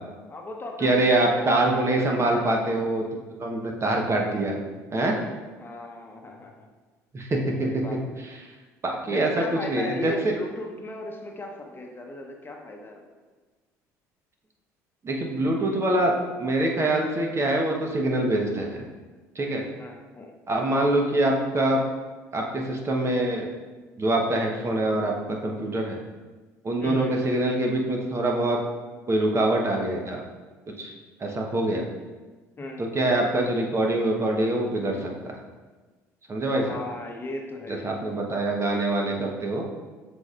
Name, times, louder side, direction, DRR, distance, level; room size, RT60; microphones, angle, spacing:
voice 1, 0.3-2.7 5.6-6.7 7.6-8.0 9.1-13.1 19.8-20.3 26.8-27.1 32.6-32.9 36.6-37.9, left 2 dB, 25° left, 1 dB, 1.0 m, -37 dB
voice 2, 0.8-3.0 3.4-4.6 4.9-5.2 7.1-7.8 8.8-10.3 15.0-18.8 19.3-19.6 20.5-21.8 22.3-23.5 24.0-26.0 26.6-28.6 29.1-30.2 30.8-30.9 31.2-31.9 32.8-35.4 36.3-36.8 37.7-39.6, right 1 dB, 35° right, 0 dB, 1.1 m, -24 dB
7.6 x 5.3 x 2.5 m, 1.3 s
hypercardioid pair, 65°, 8 cm